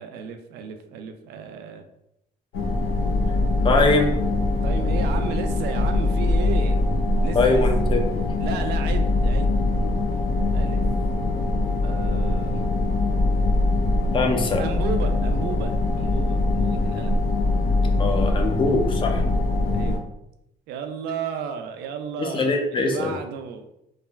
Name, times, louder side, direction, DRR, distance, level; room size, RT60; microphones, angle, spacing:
voice 1, 0.0-1.8 4.6-6.8 7.2-7.6 8.4-9.5 10.5-10.8 11.8-12.7 14.6-17.2 19.7-20.1 20.7-23.6, right 6 dB, 80° right, 7 dB, 0.4 m, -33 dB
sound 1, 2.5-20.0, left 2 dB, 85° left, 0.5 m, -22 dB
voice 2, 3.6-4.1 7.3-8.0 14.1-14.6 18.0-19.2 22.2-23.1, left 3 dB, 30° left, 3 dB, 0.5 m, -22 dB
3.2 x 2.0 x 2.2 m, 0.83 s
cardioid pair, 110°, 17 cm